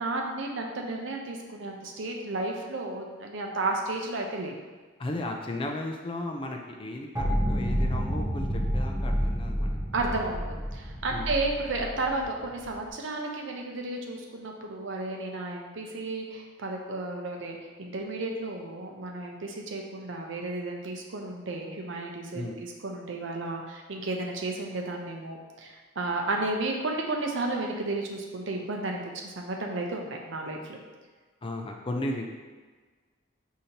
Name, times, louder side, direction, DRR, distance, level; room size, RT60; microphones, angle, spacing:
voice 1, 0.0-4.5 9.9-10.5 10.7-30.8, right 2 dB, 60° right, 1 dB, 0.6 m, -33 dB
voice 2, 5.0-9.8 11.1-11.3 22.3-22.6 31.4-32.3, left 1 dB, 25° left, 2 dB, 0.3 m, -35 dB
sound 1, 7.2-12.8, equal, 15° right, 0.8 m, -29 dB
5.0 x 2.7 x 2.9 m, 1.4 s
head